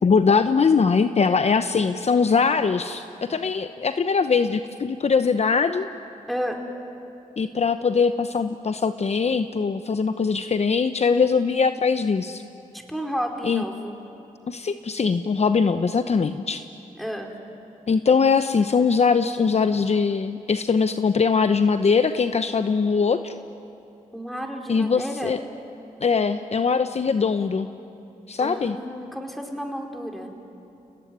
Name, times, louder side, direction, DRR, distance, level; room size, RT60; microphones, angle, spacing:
voice 1, 0.0-5.9 7.4-12.4 13.4-13.6 14.5-16.6 17.9-23.3 24.7-25.4 26.0-27.7 28.3-28.8, left 5 dB, 50° left, 9 dB, 0.9 m, -21 dB
voice 2, 6.3-6.6 12.7-13.9 17.0-17.3 24.1-25.3 28.4-30.3, equal, ahead, 2 dB, 4.4 m, -31 dB
29.5 x 18.5 x 9.6 m, 2.8 s
cardioid pair, 55°, 14 cm